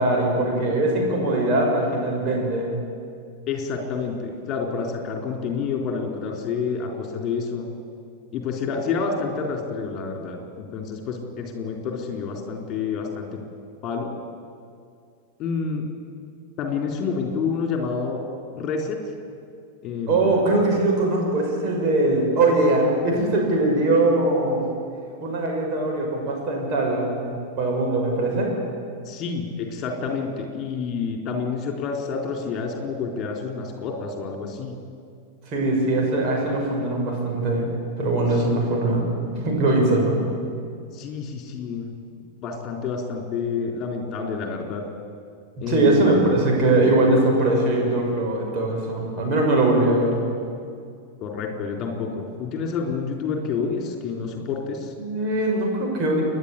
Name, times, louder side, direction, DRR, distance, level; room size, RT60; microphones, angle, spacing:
voice 1, 0.0-2.7 20.1-24.6 25.2-28.5 35.5-37.7 38.0-40.2 45.7-50.2 55.0-56.2, right 2 dB, 35° right, -1 dB, 6.3 m, -21 dB
voice 2, 3.5-7.7 8.3-13.4 13.8-14.1 15.4-15.8 16.6-18.2 18.5-19.0 19.8-20.5 29.1-34.7 40.9-42.0 42.4-44.8 45.6-46.4 51.2-54.9, left 5 dB, 35° left, 2 dB, 4.0 m, -28 dB
29.0 x 11.0 x 8.5 m, 2.3 s
figure-of-eight pair, 90°, 0 cm